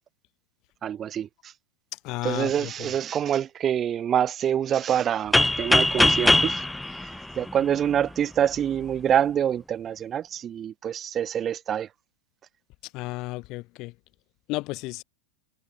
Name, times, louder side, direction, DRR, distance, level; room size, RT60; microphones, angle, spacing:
voice 1, 0.8-1.3 2.2-6.6 7.0-7.1 7.4-11.9, right 9 dB, 25° right, 0.9 m, -26 dB
voice 2, 2.0-2.7 12.9-13.9 14.5-15.0, left 21 dB, 40° left, 3.4 m, -32 dB
sound 1, 5.3-8.1, left 1 dB, 5° left, 0.6 m, -22 dB
figure-of-eight pair, 90°, 0 cm